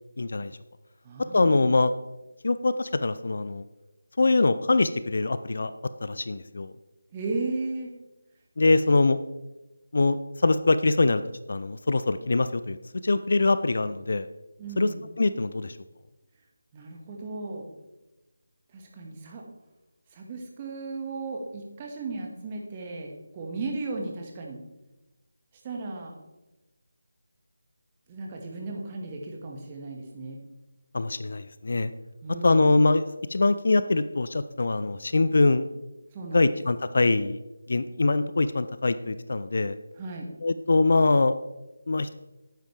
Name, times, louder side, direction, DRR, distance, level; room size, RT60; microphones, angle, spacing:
voice 1, 0.2-0.5 1.3-1.9 2.4-3.6 4.2-5.7 6.0-6.7 8.6-9.2 9.9-10.2 10.4-11.2 11.5-12.8 13.0-14.3 14.8-14.9 15.2-15.7 30.9-31.9 32.4-33.0 33.3-35.7 36.3-37.4 37.7-39.7 40.4-41.3 41.9-42.1, left 3 dB, 55° left, 13 dB, 0.5 m, -23 dB
voice 2, 1.0-1.6 7.1-7.9 14.6-15.0 16.7-17.7 18.7-19.4 20.1-24.6 25.6-26.1 28.1-30.4 32.2-32.8 36.1-36.6 40.0-40.3, right 3 dB, 20° right, 0 dB, 1.8 m, -35 dB
12.0 x 9.3 x 3.4 m, 1.0 s
figure-of-eight pair, 160°, 0 cm